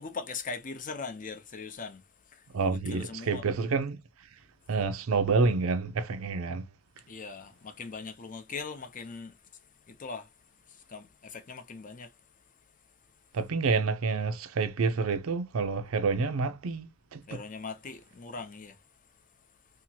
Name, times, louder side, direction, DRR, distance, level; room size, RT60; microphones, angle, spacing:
voice 1, 0.0-2.0 2.3-2.4 2.7-3.4 7.1-9.4 9.9-10.3 10.9-12.1 17.3-18.8, left 4 dB, 40° left, 0.5 m, -40 dB
voice 2, 2.5-4.0 4.7-6.7 13.3-17.4, right 4 dB, 75° right, 0.5 m, -28 dB
2.8 x 2.4 x 2.7 m
head